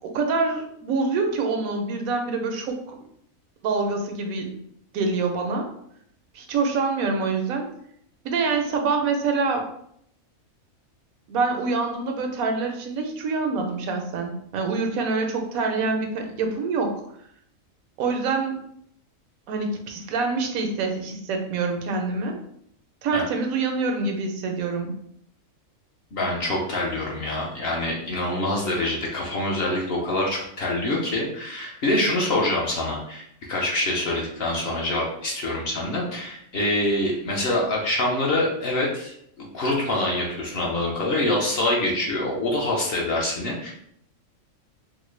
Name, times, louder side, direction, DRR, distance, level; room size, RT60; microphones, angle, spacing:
voice 1, 0.0-3.0 3.6-4.5 4.9-5.7 6.3-7.7 8.2-9.6 11.3-16.9 18.0-18.6 19.5-22.4 23.0-24.9, right 4 dB, 85° right, 4 dB, 1.1 m, -26 dB
voice 2, 26.1-43.7, left 1 dB, 55° left, -2 dB, 0.8 m, -25 dB
3.8 x 2.1 x 3.1 m, 0.70 s
omnidirectional pair, 1.4 m